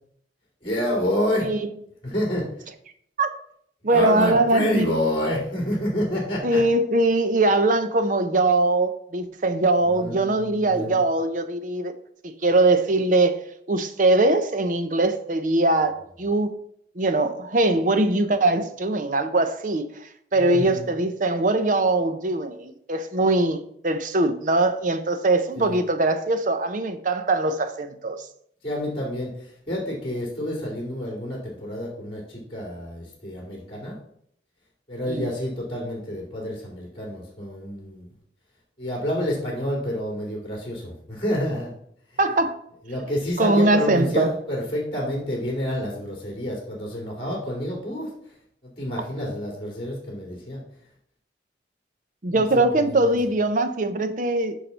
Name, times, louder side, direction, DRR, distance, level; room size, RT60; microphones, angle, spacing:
voice 1, 0.6-1.5 2.0-2.5 3.8-6.6 9.9-11.0 20.4-20.8 25.6-25.8 28.6-34.0 34.9-38.1 38.8-41.7 42.9-48.1 48.6-50.6 52.3-53.2, left 1 dB, 30° left, 2.6 m, -28 dB
voice 2, 3.8-5.0 6.4-11.9 12.2-16.6 16.9-28.3 35.1-35.3 42.2-42.6 43.4-44.3 52.2-54.6, right 2 dB, 45° right, 0.7 m, -22 dB
6.7 x 5.9 x 5.6 m
head